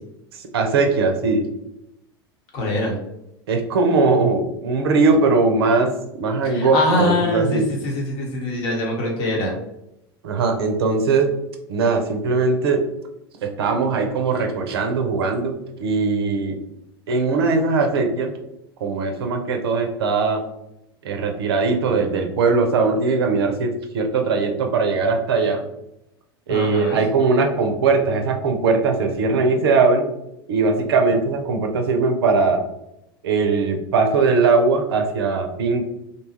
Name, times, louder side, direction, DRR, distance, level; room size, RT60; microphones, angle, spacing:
voice 1, 0.5-1.5 3.5-5.9 6.2-7.7 10.2-11.3 11.7-12.8 13.4-16.6 17.1-18.3 18.8-20.4 21.0-25.6 26.5-30.1 30.5-32.6 33.2-35.9, right 4 dB, 70° right, 4 dB, 0.5 m, -20 dB
voice 2, 2.5-3.0 6.4-9.6 26.5-27.0, left 2 dB, 50° left, 0 dB, 1.0 m, -23 dB
2.7 x 2.3 x 2.8 m, 0.84 s
hypercardioid pair, 85°, 13 cm